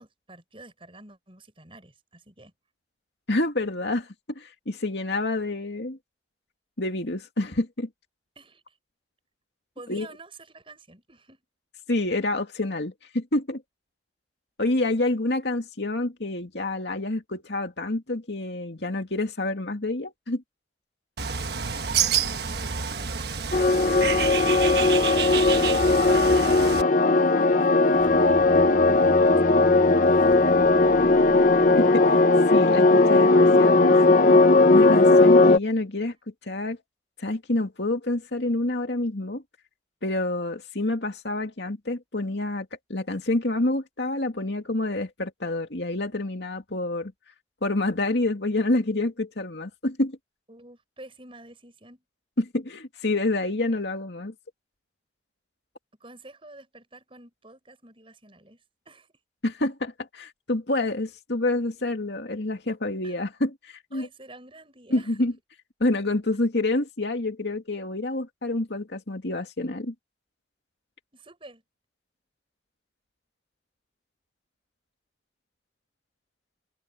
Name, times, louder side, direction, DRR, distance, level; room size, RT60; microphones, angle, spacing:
voice 1, 0.0-2.5 8.4-8.8 9.8-11.4 21.8-25.2 25.9-29.7 30.2-30.5 50.5-52.0 56.0-59.1 63.0-63.2 63.9-65.2 71.1-71.6, right 2 dB, 30° right, 7.1 m, -49 dB
voice 2, 3.3-4.1 4.4-6.0 6.8-7.9 9.9-10.1 11.9-13.6 14.6-20.4 31.8-32.2 32.5-34.2 34.7-36.1 36.4-36.8 37.2-39.4 40.0-47.1 47.6-50.2 52.4-54.3 59.4-64.1 64.9-65.3 65.8-69.9, left 2 dB, 70° left, 2.4 m, -28 dB
Bird, 21.2-26.8, right 7 dB, 60° right, 1.3 m, -28 dB
sound 1, 23.5-35.6, left 3 dB, 45° left, 1.0 m, -18 dB
sound 2, 27.9-32.2, left 1 dB, 25° left, 1.2 m, -40 dB
open air
head